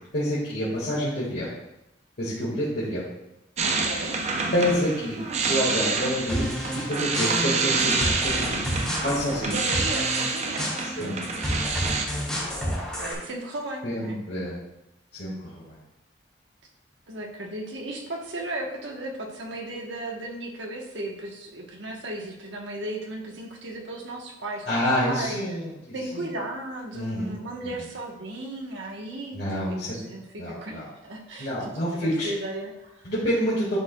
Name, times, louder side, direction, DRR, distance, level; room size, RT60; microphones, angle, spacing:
voice 1, 0.1-1.5 2.2-3.1 4.5-6.6 6.9-9.7 10.8-11.2 13.8-14.6 15.2-15.8 24.7-26.3 26.9-27.3 29.3-29.9 30.4-30.8 31.4-32.3 33.0-33.8, equal, 60° left, -9 dB, 1.8 m, -28 dB
sound 1, 3.6-12.1, right 4 dB, 35° right, 0.6 m, -27 dB
voice 2, 3.6-4.2 8.3-8.4 9.5-10.7 12.7-14.2 17.1-24.8 25.0-25.6 25.9-31.5 31.9-33.1, right 1 dB, 85° right, -1 dB, 1.2 m, -35 dB
sound 2, 6.3-13.1, equal, ahead, 2.3 m, -31 dB
11.0 x 4.8 x 2.3 m, 0.90 s
head